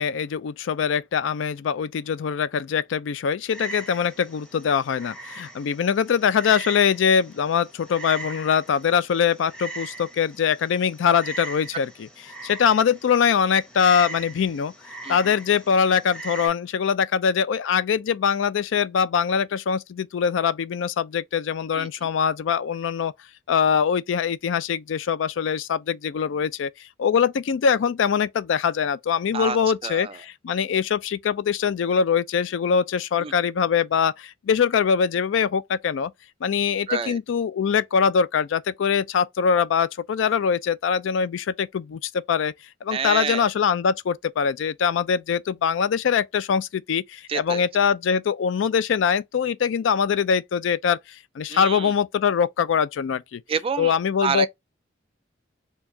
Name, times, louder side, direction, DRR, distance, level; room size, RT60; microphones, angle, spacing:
voice 1, 0.0-12.1 12.4-14.7 15.1-23.1 23.5-36.1 36.4-42.5 42.8-53.4 53.8-54.5, left 7 dB, 80° left, 0.4 m, -23 dB
Frog, 3.5-16.5, right 3 dB, 5° left, 0.8 m, -40 dB
voice 2, 29.8-30.1 33.2-33.3 36.9-37.2 42.9-43.5 47.3-47.6 51.5-51.9 53.5-54.0 54.2-54.5, right 6 dB, 30° right, 0.3 m, -28 dB
4.5 x 2.3 x 2.6 m
head